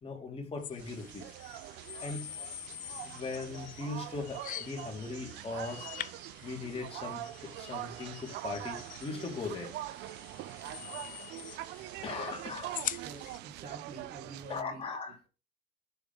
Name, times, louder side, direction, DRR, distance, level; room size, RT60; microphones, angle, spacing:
voice 1, 0.0-1.3 2.0-2.3 3.0-5.8 6.4-9.7 11.0-11.5 12.0-12.8 14.5-15.3, left 4 dB, 35° left, 1 dB, 2.7 m, -39 dB
sound 1, 0.6-13.4, left 12 dB, 50° left, 0.5 m, -45 dB
sound 2, 0.8-14.6, right 15 dB, 85° right, 0.5 m, -43 dB
voice 2, 13.0-14.8 15.1-15.3, right 3 dB, 60° right, 2 dB, 1.8 m, -47 dB
6.9 x 3.7 x 5.4 m, 0.31 s
cardioid pair, 110°, 17 cm